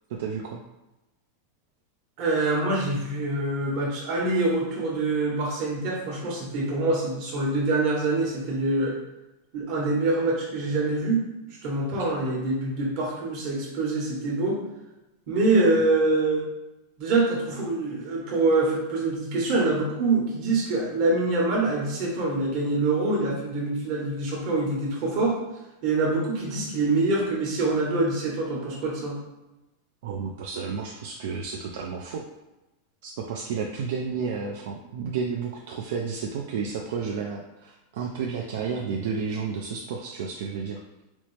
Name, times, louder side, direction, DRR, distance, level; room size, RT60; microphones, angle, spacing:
voice 1, 0.1-0.6 30.0-32.2 33.0-40.8, right 5 dB, 70° right, 0 dB, 0.4 m, -31 dB
voice 2, 2.2-8.9 9.5-11.2 11.6-14.6 15.3-16.4 17.0-25.4 25.8-29.2, right 2 dB, 50° right, -3 dB, 1.2 m, -25 dB
4.2 x 2.1 x 3.1 m, 1.0 s
supercardioid pair, 145°, 0 cm